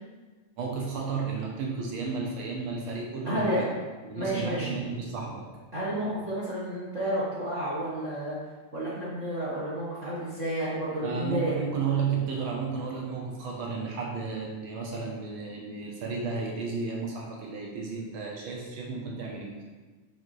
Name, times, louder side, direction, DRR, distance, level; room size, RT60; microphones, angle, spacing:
voice 1, 0.6-3.7 4.0-5.6 11.0-19.6, right 5 dB, 80° right, -1 dB, 1.1 m, -33 dB
voice 2, 3.2-3.7 4.1-4.7 5.7-8.4 8.7-11.6, right 1 dB, 65° right, -8 dB, 0.7 m, -31 dB
6.7 x 6.3 x 3.2 m, 1.3 s
omnidirectional pair, 3.5 m